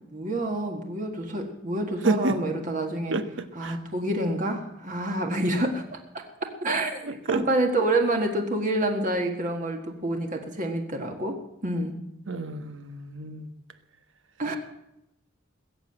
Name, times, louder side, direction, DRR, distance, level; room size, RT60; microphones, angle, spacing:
voice 1, 0.0-3.2 3.6-6.0 6.6-11.4 11.6-12.0 14.4-14.6, right 1 dB, 40° right, 3 dB, 1.8 m, -27 dB
voice 2, 2.0-2.4 3.1-3.8 7.0-7.4 12.3-13.5, right 3 dB, 65° right, 10 dB, 1.2 m, -29 dB
20.5 x 7.9 x 8.9 m, 0.83 s
head